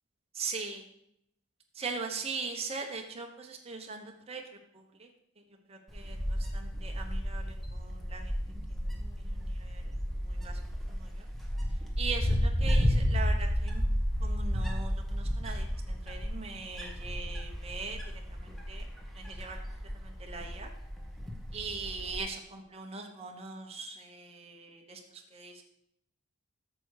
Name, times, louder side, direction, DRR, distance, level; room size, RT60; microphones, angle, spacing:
voice 1, 0.3-0.9 1.7-4.4 4.7-5.1 5.7-8.4 8.7-10.6 10.9-11.2 12.0-13.8 14.2-18.0 18.3-18.9 19.1-19.6 19.9-20.7 21.5-25.6, right 4 dB, 25° right, 2 dB, 1.1 m, -41 dB
Wind, 5.9-22.2, equal, ahead, 1.0 m, -32 dB
8.4 x 6.7 x 4.9 m, 0.74 s
head